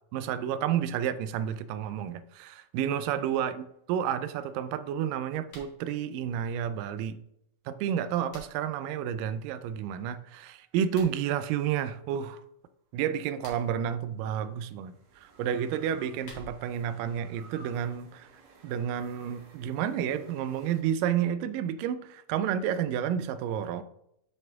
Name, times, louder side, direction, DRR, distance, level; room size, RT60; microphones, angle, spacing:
voice 1, 0.1-7.2 7.7-12.4 12.9-14.9 15.2-18.3 18.6-23.8, right 9 dB, 90° right, 13 dB, 2.2 m, -30 dB
sound 1, 5.4-5.8 7.8-8.8 10.8-11.2 13.2-13.8 15.8-16.8, left 2 dB, 45° left, 2.7 m, -50 dB
sound 2, 9.9-11.4 13.3-20.8, right 3 dB, 65° right, 2.4 m, -57 dB
8.0 x 5.7 x 3.5 m, 0.77 s
omnidirectional pair, 3.8 m